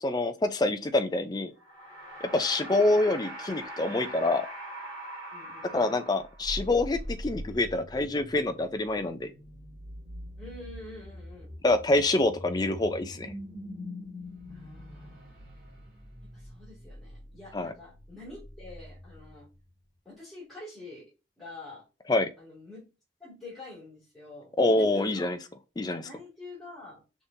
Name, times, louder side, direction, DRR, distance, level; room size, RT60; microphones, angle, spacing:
voice 1, 0.0-1.5 2.2-4.5 5.6-9.3 11.6-13.3 17.5-17.7 22.1-22.3 24.6-25.4 25.8-26.0, left 2 dB, 20° left, 0.3 m, -26 dB
sound 1, 1.6-6.6, right 1 dB, 15° right, 2.3 m, -42 dB
voice 2, 5.3-5.9 10.4-11.5 14.5-15.3 16.3-19.5 20.0-21.1 21.4-21.9 22.4-22.8 23.2-24.5 24.9-25.4 25.8-27.0, left 2 dB, ahead, 2.4 m, -46 dB
sound 2, 6.2-19.7, left 1 dB, 35° right, 2.4 m, -43 dB
5.2 x 3.5 x 2.7 m
head